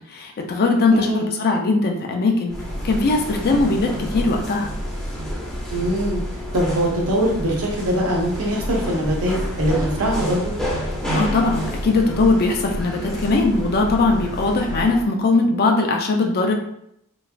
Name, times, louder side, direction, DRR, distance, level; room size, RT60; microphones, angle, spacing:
voice 1, 0.1-2.6 2.8-4.7 11.1-16.5, left 3 dB, 45° left, 2 dB, 0.4 m, -20 dB
voice 2, 0.9-1.3 5.7-6.2 6.5-10.5, equal, 70° right, -2 dB, 0.8 m, -22 dB
sound 1, 2.5-15.1, equal, 5° left, 0.6 m, -29 dB
3.0 x 2.4 x 2.4 m, 0.73 s
head